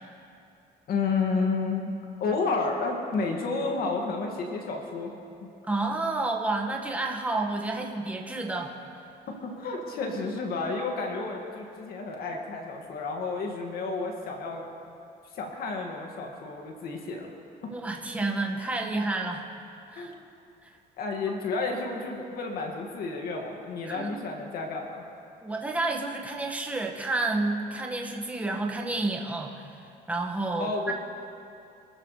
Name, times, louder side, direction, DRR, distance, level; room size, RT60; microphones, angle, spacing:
voice 1, 0.9-1.9 2.2-5.5 9.3-14.6 15.3-17.3 19.9-20.1 21.0-25.0 30.6-30.9, left 4 dB, 65° left, 1 dB, 2.2 m, -31 dB
voice 2, 5.7-8.8 17.7-19.5 19.9-20.1 20.6-20.7 23.9-24.2 25.4-29.7 30.1-30.9, right 2 dB, 10° right, 0 dB, 1.7 m, -30 dB
26.5 x 14.0 x 3.3 m, 2.5 s
cardioid pair, 110°, 17 cm